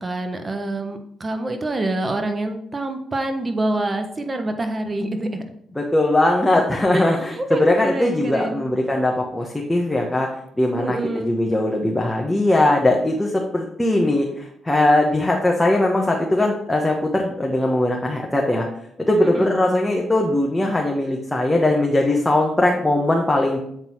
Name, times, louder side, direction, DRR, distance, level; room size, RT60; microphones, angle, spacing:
voice 1, 0.0-5.4 6.9-8.6 10.8-11.3 19.2-19.5, right 2 dB, 30° right, 6 dB, 1.1 m, -26 dB
voice 2, 5.8-10.3 10.6-18.7 19.1-23.6, left 1 dB, 10° left, -1 dB, 1.1 m, -20 dB
7.9 x 3.9 x 4.5 m, 0.72 s
supercardioid pair, 70°, 0 cm